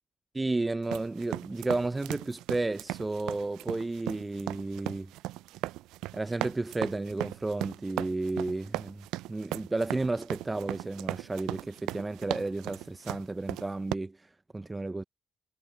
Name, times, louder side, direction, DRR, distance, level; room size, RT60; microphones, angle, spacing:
voice 1, 0.3-5.1 6.1-15.0, right 2 dB, 20° right, 0.6 m, -32 dB
sound 1, 0.8-13.9, right 17 dB, 70° right, 0.6 m, -37 dB
hypercardioid pair, 45°, 0 cm